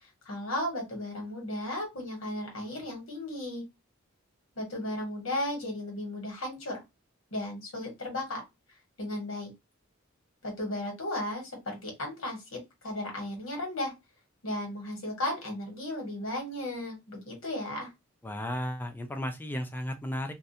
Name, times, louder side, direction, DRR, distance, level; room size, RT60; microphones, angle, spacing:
voice 1, 0.2-3.6 4.5-6.8 7.3-8.4 9.0-9.5 10.4-12.6 12.8-13.9 14.4-17.9, left 1 dB, 90° left, 1.3 m, -35 dB
voice 2, 18.2-20.3, equal, 10° left, 0.4 m, -34 dB
2.5 x 2.2 x 2.7 m
head